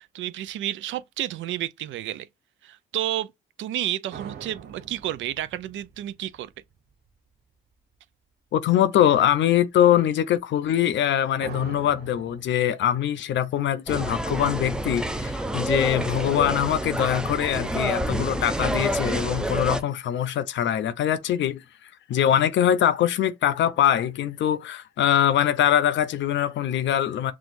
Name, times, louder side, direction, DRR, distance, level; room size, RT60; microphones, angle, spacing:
voice 1, 0.0-2.3 2.6-3.3 3.6-6.5, right 12 dB, 75° right, 0.4 m, -31 dB
sound 1, 4.1-7.1 11.4-12.4, right 8 dB, 55° right, 0.9 m, -42 dB
voice 2, 8.5-21.6 22.1-27.3, left 10 dB, 70° left, 0.6 m, -23 dB
sound 2, 13.9-19.8, right 1 dB, 5° right, 0.5 m, -28 dB
6.0 x 2.3 x 2.5 m
cardioid pair, 90°, 20 cm